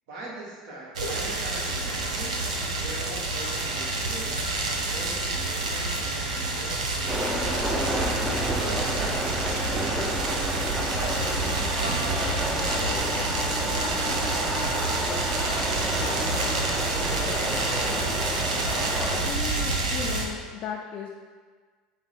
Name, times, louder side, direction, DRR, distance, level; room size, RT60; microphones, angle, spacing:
voice 1, 0.1-2.4 2.8-7.4 8.6-9.3 9.7-11.0 11.3-17.6, right 1 dB, 65° right, -4 dB, 1.2 m, -42 dB
sound 1, 1.0-20.3, right 2 dB, 90° right, 0.6 m, -28 dB
sound 2, 7.1-19.3, right 1 dB, 10° right, 0.5 m, -30 dB
sound 3, 10.7-19.2, right 1 dB, 50° right, 0.9 m, -43 dB
voice 2, 19.3-21.1, left 7 dB, 45° left, -1 dB, 0.4 m, -35 dB
4.5 x 2.1 x 4.1 m, 1.5 s
hypercardioid pair, 90°, 4 cm